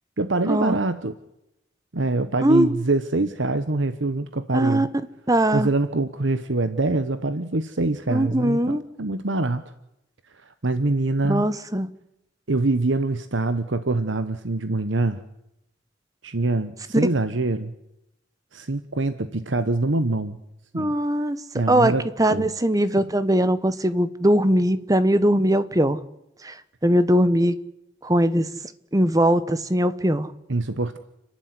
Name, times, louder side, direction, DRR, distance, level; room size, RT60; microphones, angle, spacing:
voice 1, 0.2-1.1 1.9-4.9 5.5-9.6 10.3-11.5 12.5-15.2 16.2-17.7 18.5-20.4 20.7-20.9 21.5-22.5 30.5-31.0, right 2 dB, 70° right, 11 dB, 1.1 m, -24 dB
voice 2, 2.4-2.8 4.5-4.9 5.3-5.7 8.1-8.8 11.3-11.9 17.0-17.1 20.7-21.4 21.7-21.9 22.2-26.0 26.4-27.5 28.0-28.5 28.9-30.3, right 1 dB, 20° right, 13 dB, 1.2 m, -20 dB
30.0 x 12.0 x 9.7 m, 0.86 s
head